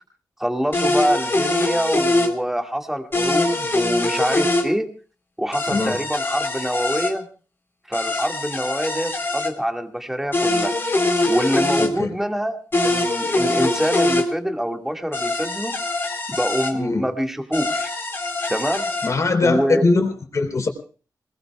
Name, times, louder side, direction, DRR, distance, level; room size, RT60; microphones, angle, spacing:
voice 1, 0.4-4.9 5.4-7.2 7.9-10.7 11.3-12.6 12.8-15.7 16.4-17.9 18.5-18.9 19.4-19.9, equal, 5° right, 3 dB, 2.0 m, -25 dB
sound 1, 0.7-2.3 3.1-4.7 5.5-7.1 7.9-9.5 10.3-11.9 12.7-14.3 15.1-16.7 17.5-19.1, left 2 dB, 35° left, 3.7 m, -23 dB
voice 2, 11.8-12.1 16.7-17.0 19.0-20.7, left 3 dB, 50° left, 4 dB, 4.1 m, -21 dB
27.5 x 20.5 x 2.4 m, 0.39 s
wide cardioid pair, 105°, 7 cm